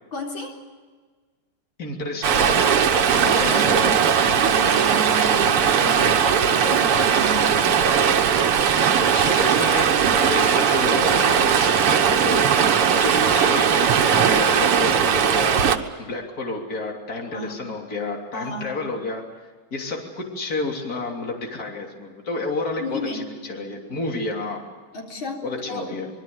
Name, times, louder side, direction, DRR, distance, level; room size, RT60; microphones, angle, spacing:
voice 1, 0.1-0.6 3.1-3.9 4.2-7.7 17.3-17.6 18.3-18.8 22.8-23.3 24.9-25.9, left 1 dB, 60° left, 0 dB, 4.6 m, -33 dB
voice 2, 1.8-2.6 3.2-3.9 9.0-9.9 10.2-12.7 12.9-24.6 25.4-26.1, left 2 dB, 40° left, 1 dB, 3.6 m, -30 dB
Stream, 2.2-15.8, right 7 dB, 90° right, 2.3 m, -19 dB
25.5 x 23.0 x 8.0 m, 1.4 s
omnidirectional pair, 2.4 m